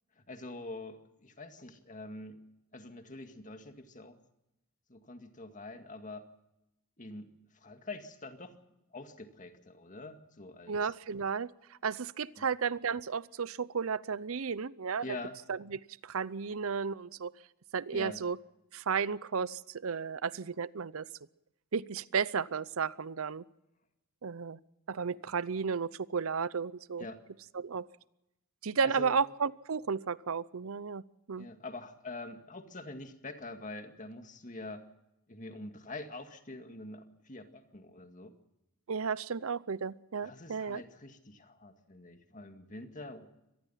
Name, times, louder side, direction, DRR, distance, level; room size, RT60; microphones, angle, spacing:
voice 1, 0.2-2.4 2.7-4.2 4.9-6.3 7.0-7.3 7.5-8.6 8.9-10.9 12.4-12.5 15.0-15.4 17.9-18.2 27.0-27.2 28.8-29.2 31.4-34.8 35.3-38.3 40.2-43.3, left 2 dB, 35° left, 7 dB, 2.0 m, -45 dB
voice 2, 10.7-15.1 15.5-17.3 17.7-18.4 18.7-21.1 21.7-23.4 24.2-24.6 24.9-27.1 27.5-27.9 28.6-31.0 31.3-31.5 38.9-40.8, right 5 dB, 70° right, 19 dB, 0.6 m, -33 dB
25.0 x 19.0 x 5.7 m, 0.90 s
head